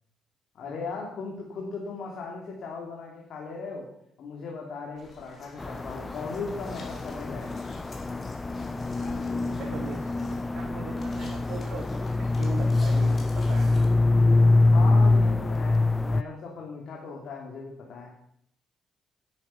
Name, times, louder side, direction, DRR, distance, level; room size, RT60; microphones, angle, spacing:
voice 1, 0.5-3.9 4.2-7.6 14.7-18.1, left 4 dB, 70° left, -2 dB, 2.6 m, -38 dB
sound 1, 5.0-13.9, left 2 dB, 45° left, 3.4 m, -50 dB
sound 2, 5.6-16.2, left 2 dB, 20° left, 0.4 m, -24 dB
voice 2, 9.6-13.9, right 4 dB, 80° right, 1 dB, 1.9 m, -40 dB
10.5 x 9.5 x 5.7 m, 0.73 s
cardioid pair, 90°, 0 cm